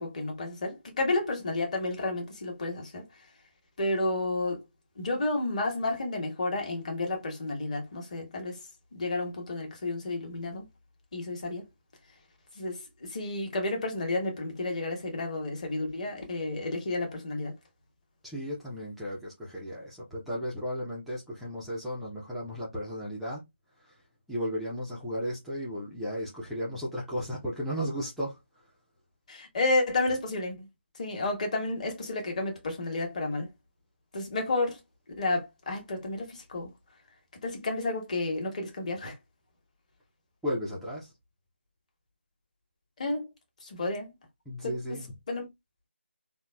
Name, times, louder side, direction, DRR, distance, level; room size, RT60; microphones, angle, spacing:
voice 1, 0.0-3.0 3.8-4.6 5.0-8.6 8.9-10.7 11.1-11.6 12.6-17.5 29.3-30.7 31.0-33.5 34.1-34.8 35.2-36.7 37.4-39.1 43.0-43.3 43.6-44.1 44.6-44.7 45.3-45.5, left 2 dB, 35° left, 1.0 m, -31 dB
voice 2, 18.2-23.4 23.8-23.9 24.3-28.4 40.4-41.1 44.5-45.1, equal, ahead, 0.3 m, -34 dB
3.8 x 2.0 x 2.2 m
figure-of-eight pair, 160°, 7 cm